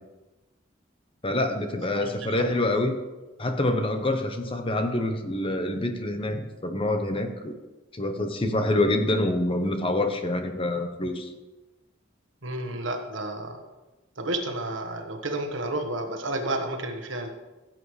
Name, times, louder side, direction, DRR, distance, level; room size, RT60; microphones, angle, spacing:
voice 1, 1.2-3.0 3.4-7.5 7.9-11.3, left 1 dB, 30° left, 6 dB, 0.9 m, -26 dB
voice 2, 1.9-2.5 12.4-13.6 14.2-17.3, right 2 dB, 75° right, 4 dB, 1.4 m, -31 dB
16.0 x 7.7 x 3.3 m, 1.1 s
head